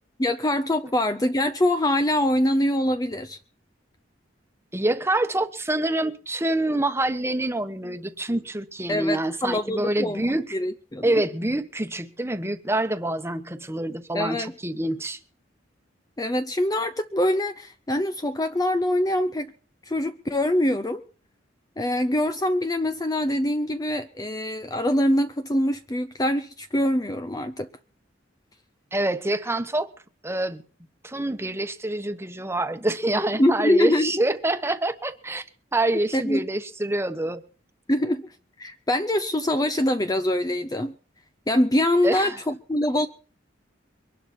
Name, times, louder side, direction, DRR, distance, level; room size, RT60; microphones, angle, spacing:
voice 1, 0.2-3.4 8.9-11.2 14.1-14.5 16.2-19.5 19.9-21.0 21.8-27.7 33.4-34.1 36.1-36.5 37.9-38.3 38.6-40.9 41.5-43.1, left 1 dB, 20° left, 0.7 m, -24 dB
voice 2, 4.7-10.6 11.0-15.2 28.9-29.9 30.2-30.6 31.0-35.4 35.7-37.4 42.0-42.4, right 1 dB, 15° right, 1.2 m, -26 dB
23.5 x 12.0 x 4.3 m
head